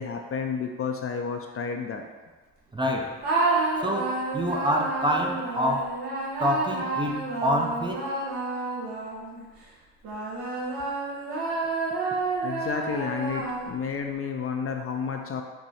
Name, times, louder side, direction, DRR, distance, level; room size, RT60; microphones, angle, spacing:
voice 1, 0.0-2.0 12.4-15.4, left 6 dB, 40° left, 3 dB, 0.5 m, -31 dB
voice 2, 2.7-3.2 3.8-6.0 6.4-8.1, equal, 15° right, 0 dB, 0.5 m, -27 dB
sound 1, 3.2-9.5 10.0-14.0, right 3 dB, 80° right, 1.2 m, -30 dB
4.5 x 2.6 x 4.1 m, 1.3 s
supercardioid pair, 75°, 37 cm